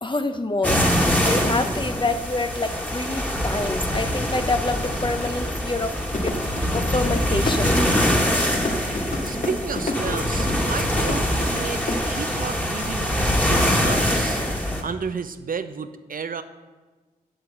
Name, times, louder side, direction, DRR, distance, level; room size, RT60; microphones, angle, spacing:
voice 1, 0.0-7.8, left 2 dB, 30° left, 8 dB, 0.9 m, -27 dB
sound 1, 0.6-14.8, equal, 10° left, 2.0 m, -24 dB
sound 2, 6.1-12.1, left 2 dB, 55° left, 1.8 m, -28 dB
voice 2, 9.2-14.4 14.8-16.4, right 5 dB, 60° right, 9 dB, 0.7 m, -32 dB
7.8 x 7.8 x 7.8 m, 1.3 s
cardioid pair, 50°, 16 cm